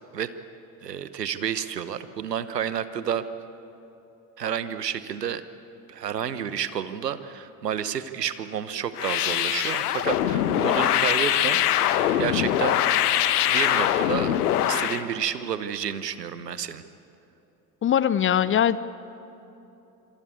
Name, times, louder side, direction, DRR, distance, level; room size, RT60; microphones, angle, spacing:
voice 1, 0.8-3.3 4.4-5.4 5.9-12.8 13.5-14.3 14.6-16.8, right 8 dB, 80° right, 13 dB, 1.1 m, -30 dB
sound 1, 9.0-15.0, left 11 dB, 70° left, 1.2 m, -23 dB
voice 2, 17.8-18.8, left 9 dB, 25° left, 17 dB, 0.7 m, -21 dB
27.5 x 23.0 x 8.4 m, 3.0 s
figure-of-eight pair, 60°, 48 cm